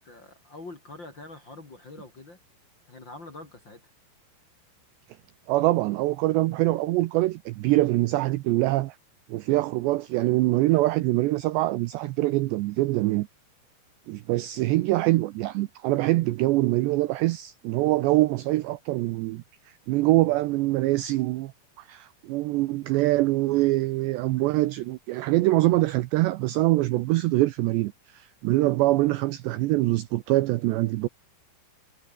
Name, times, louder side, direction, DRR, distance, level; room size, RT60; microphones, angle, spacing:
voice 1, 0.0-2.4 2.9-3.8, left 2 dB, 30° left, 2.6 m, -44 dB
voice 2, 5.5-9.0 9.3-13.3 14.1-19.4 19.9-21.5 21.9-31.1, right 18 dB, 80° right, 2.5 m, -24 dB
omnidirectional pair, 5.8 m